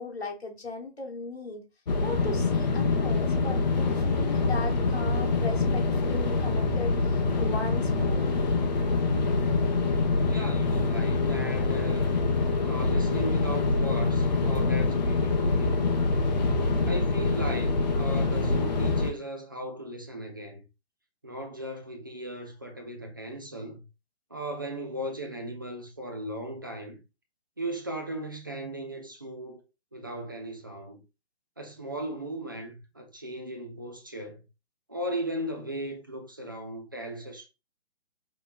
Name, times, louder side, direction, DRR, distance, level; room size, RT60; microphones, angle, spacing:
voice 1, 0.0-1.6 2.0-8.3, left 3 dB, 70° left, 1.1 m, -37 dB
sound 1, 1.9-19.1, left 3 dB, 40° left, 0.7 m, -25 dB
voice 2, 10.3-12.1 12.6-16.2 16.9-20.6 21.2-23.8 24.3-27.0 27.6-29.6 29.9-31.0 31.6-34.4 34.9-37.5, right 1 dB, 20° right, 0.4 m, -37 dB
5.3 x 2.9 x 2.3 m
figure-of-eight pair, 135°, 33 cm